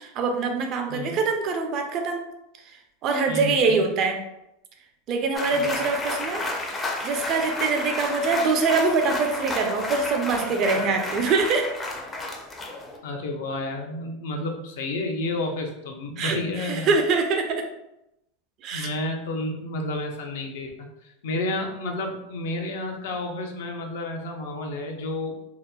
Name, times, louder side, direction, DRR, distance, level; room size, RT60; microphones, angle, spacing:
voice 1, 0.0-2.2 3.0-4.2 5.1-6.4 7.0-11.7 16.2-17.6 18.6-18.9, right 4 dB, 45° right, 5 dB, 0.4 m, -24 dB
voice 2, 3.3-3.8 5.6-5.8 13.0-16.9 18.7-25.4, left 2 dB, 75° left, 3 dB, 0.4 m, -31 dB
sound 1, 5.3-13.0, left 2 dB, 20° left, 0.4 m, -31 dB
2.7 x 2.0 x 2.2 m, 0.87 s
hypercardioid pair, 115°, 0 cm